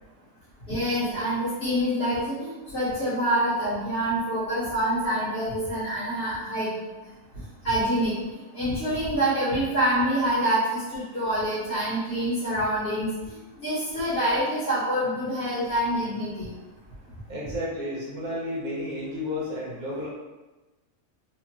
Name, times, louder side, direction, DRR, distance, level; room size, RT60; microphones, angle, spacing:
voice 1, 0.7-6.8 7.6-8.1 8.5-16.5, right 1 dB, 50° left, -11 dB, 1.1 m, -26 dB
voice 2, 17.3-20.1, left 1 dB, 75° right, -5 dB, 1.1 m, -32 dB
2.8 x 2.4 x 2.9 m, 1.1 s
omnidirectional pair, 1.5 m